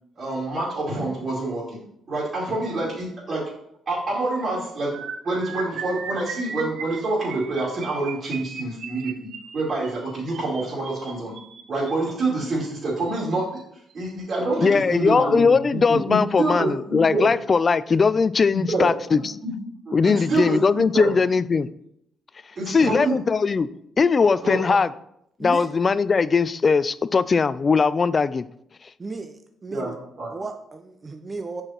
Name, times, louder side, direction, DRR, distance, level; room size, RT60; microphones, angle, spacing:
voice 1, 0.2-1.8 2.1-3.4 3.9-11.3 11.7-13.5 13.9-15.5 15.9-17.3 18.5-18.9 19.4-19.5 19.9-21.2 22.6-23.2 24.4-24.6 29.7-29.9 30.2-30.3, right 2 dB, 50° right, -7 dB, 2.6 m, -26 dB
sound 1, 4.9-12.1 12.9-13.1 13.4-13.6 13.9-14.1, right 6 dB, 75° right, 0.6 m, -37 dB
voice 2, 14.6-19.4 19.9-21.7 22.7-23.7 24.0-24.9 25.4-28.5, left 5 dB, 35° left, 17 dB, 0.3 m, -20 dB
voice 3, 29.0-30.0 30.3-31.6, right 3 dB, 30° right, 6 dB, 0.5 m, -34 dB
6.2 x 4.9 x 4.4 m, 0.73 s
cardioid pair, 90°, 0 cm